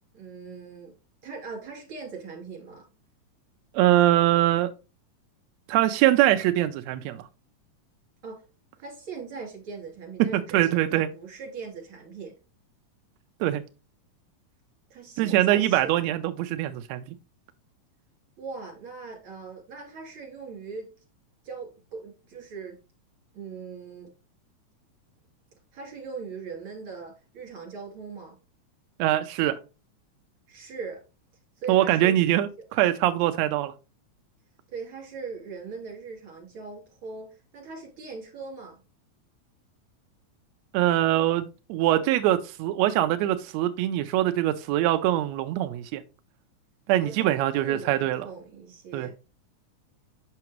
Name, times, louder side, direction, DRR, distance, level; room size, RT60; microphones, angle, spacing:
voice 1, 0.1-2.9 8.2-8.4 8.8-12.4 14.9-15.9 18.4-20.9 21.4-22.8 23.3-24.1 25.7-28.4 30.5-31.0 31.6-32.2 32.6-32.7 34.7-38.8 47.0-49.2, right 5 dB, 40° right, 3.5 m, -40 dB
voice 2, 3.7-4.7 5.7-7.2 10.3-11.1 13.4-13.6 15.2-17.0 29.0-29.6 31.7-33.7 40.7-46.0 46.9-48.3 48.9-49.1, right 14 dB, 85° right, 1.5 m, -23 dB
7.7 x 5.9 x 3.0 m
omnidirectional pair, 3.7 m